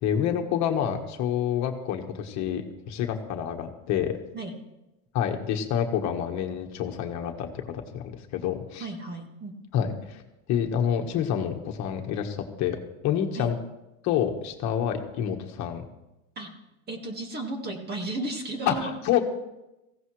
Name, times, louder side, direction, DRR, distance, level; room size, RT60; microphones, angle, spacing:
voice 1, 0.0-4.2 5.1-8.8 9.7-10.2 10.5-13.6 14.0-15.8 18.7-19.2, left 9 dB, 45° left, 3 dB, 1.5 m, -28 dB
voice 2, 8.8-9.9 13.3-13.5 16.4-16.5 16.9-18.9, right 2 dB, 25° right, 4 dB, 1.9 m, -34 dB
18.5 x 16.0 x 3.3 m, 0.95 s
supercardioid pair, 140°, 39 cm